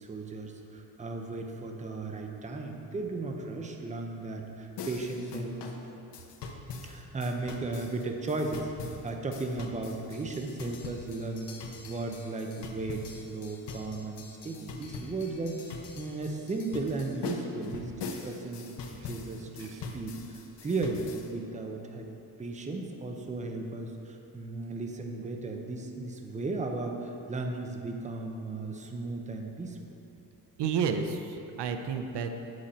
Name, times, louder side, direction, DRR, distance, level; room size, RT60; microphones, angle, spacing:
voice 1, 0.0-5.6 6.8-15.6 16.0-22.1 22.4-29.8, right 3 dB, 20° right, 3 dB, 0.7 m, -36 dB
sound 1, 4.8-21.3, left 4 dB, 80° left, 0.9 m, -42 dB
voice 2, 30.6-32.3, right 6 dB, 80° right, 7 dB, 0.7 m, -31 dB
8.6 x 7.7 x 4.3 m, 2.8 s
wide cardioid pair, 135°, 40 cm